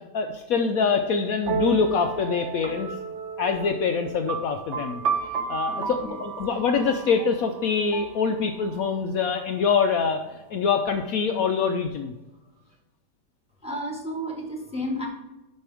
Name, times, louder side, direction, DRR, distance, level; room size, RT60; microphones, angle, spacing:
voice 1, 0.1-2.9 3.4-5.0 5.5-12.1, left 5 dB, 65° left, 5 dB, 1.0 m, -25 dB
sound 1, 1.4-9.0, right 5 dB, 55° right, 0.9 m, -32 dB
voice 2, 5.7-6.2 13.6-15.1, equal, 5° right, -2 dB, 1.5 m, -32 dB
12.0 x 5.3 x 3.4 m, 1.0 s
omnidirectional pair, 1.8 m